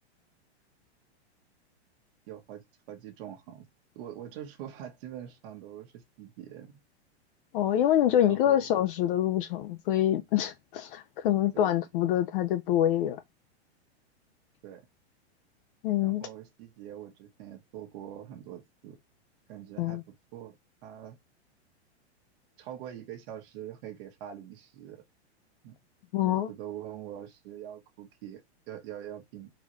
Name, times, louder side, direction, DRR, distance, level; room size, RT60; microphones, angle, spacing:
voice 1, 2.3-3.7 3.9-6.7 8.2-8.8 11.5-11.9 14.6-14.9 16.0-19.0 19.5-20.5 20.8-21.1 22.6-25.0 25.6-25.7 26.2-28.4 28.7-29.5, right 10 dB, 55° right, 1.2 m, -44 dB
voice 2, 7.5-13.2 15.8-16.3 19.8-20.0 26.1-26.5, left 11 dB, 50° left, 0.5 m, -26 dB
4.0 x 2.5 x 3.0 m
hypercardioid pair, 125°, 34 cm